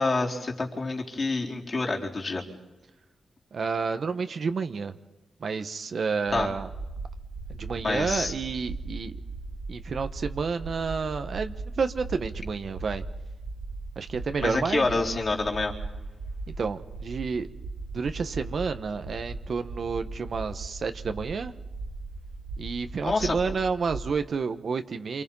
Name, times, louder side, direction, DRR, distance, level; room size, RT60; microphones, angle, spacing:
voice 1, 0.0-2.4 6.3-6.5 7.8-8.3 14.4-15.7 23.0-23.3, left 3 dB, 35° left, -1 dB, 4.1 m, -27 dB
voice 2, 3.5-4.9 5.4-6.7 7.5-9.2 9.7-13.0 13.9-14.8 16.6-17.5 17.9-21.5 22.6-25.2, right 5 dB, 50° right, 9 dB, 1.3 m, -30 dB
sound 1, 6.3-24.1, right 3 dB, 85° right, 3.2 m, -38 dB
28.5 x 27.5 x 5.6 m, 1.0 s
wide cardioid pair, 130°, 0 cm